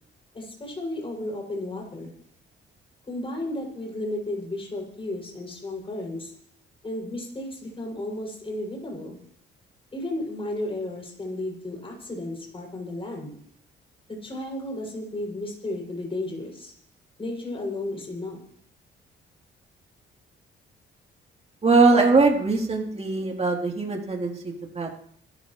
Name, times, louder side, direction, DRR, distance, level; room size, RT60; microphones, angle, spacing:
voice 1, 0.3-2.1 3.1-6.3 6.8-9.2 9.9-13.3 14.1-16.7 17.2-18.4, left 1 dB, 25° left, -2 dB, 7.6 m, -33 dB
voice 2, 21.6-24.9, right 3 dB, 35° right, 0 dB, 3.8 m, -21 dB
26.5 x 14.0 x 3.3 m, 0.63 s
cardioid pair, 90°, 20 cm